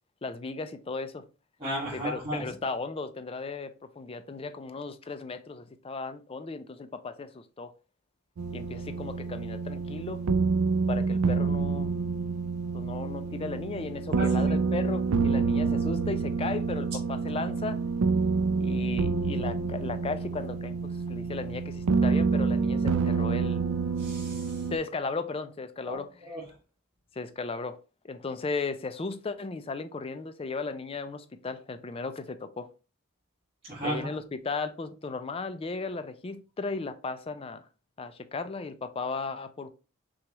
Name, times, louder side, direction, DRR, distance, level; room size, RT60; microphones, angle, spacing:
voice 1, 0.2-1.2 1.9-7.7 8.5-10.2 10.9-11.9 12.7-17.8 18.6-23.6 24.7-26.3 27.2-27.8 28.0-32.7 33.8-37.6 38.0-39.7, left 3 dB, 25° left, 0.3 m, -36 dB
voice 2, 1.6-2.4 14.2-14.5 24.0-24.6 25.9-26.0 26.2-26.4 33.7-34.1, equal, 25° right, 1.8 m, -34 dB
sound 1, 8.4-24.8, right 4 dB, 75° right, 0.4 m, -28 dB
5.9 x 2.3 x 3.0 m
head